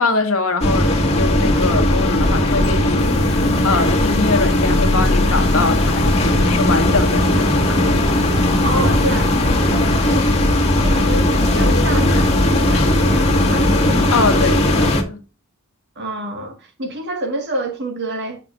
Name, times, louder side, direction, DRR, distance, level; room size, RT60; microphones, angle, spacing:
voice 1, 0.0-8.1 14.1-15.2, left 3 dB, 70° left, 1.5 m, -23 dB
sound 1, 0.6-15.0, left 1 dB, 30° left, 1.7 m, -17 dB
voice 2, 8.6-9.4 9.7-10.3 10.6-13.7 16.0-18.4, right 1 dB, 55° right, 1.8 m, -28 dB
8.6 x 5.8 x 2.5 m
head